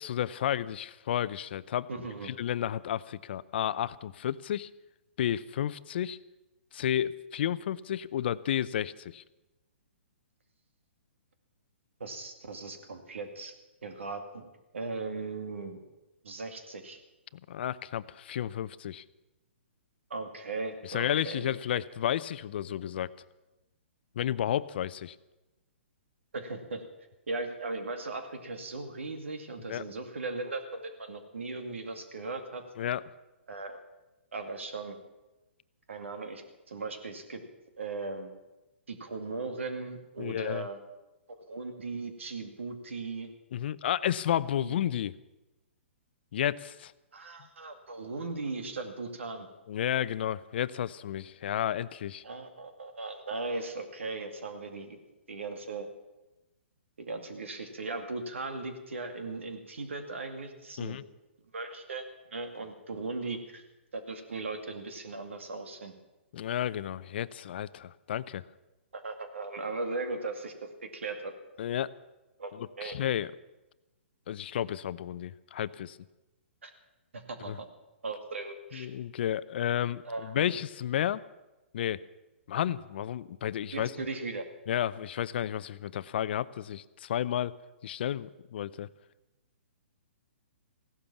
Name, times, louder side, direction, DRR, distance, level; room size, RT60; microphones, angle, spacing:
voice 1, 0.0-1.9 2.2-4.7 5.2-6.2 6.7-9.2 17.5-19.0 20.9-23.1 24.2-25.2 29.7-29.8 32.8-33.0 40.2-40.7 43.5-45.1 46.3-46.9 49.7-52.2 60.8-61.0 66.3-68.4 71.6-71.9 72.5-73.3 74.3-76.0 77.5-77.6 78.7-81.2 81.7-82.0 82.5-83.9 84.7-87.5 87.8-88.9, left 10 dB, 55° left, 17 dB, 0.6 m, -32 dB
voice 2, 1.9-2.3 12.0-13.5 13.8-14.5 14.7-15.8 16.2-17.0 20.1-21.5 26.3-26.8 27.3-32.6 33.5-33.8 34.3-35.0 35.9-37.4 37.8-38.3 38.9-40.8 41.4-43.3 44.6-44.7 47.1-49.5 52.2-55.0 55.3-55.9 57.0-61.0 61.5-62.0 62.3-63.6 63.9-65.9 68.9-71.3 72.4-72.5 72.8-73.0 76.6-76.7 77.1-77.7 78.0-78.9 80.0-80.5 83.7-84.5, right 3 dB, 80° right, 7 dB, 2.3 m, -38 dB
16.0 x 12.0 x 7.1 m, 1.0 s
hypercardioid pair, 135°, 7 cm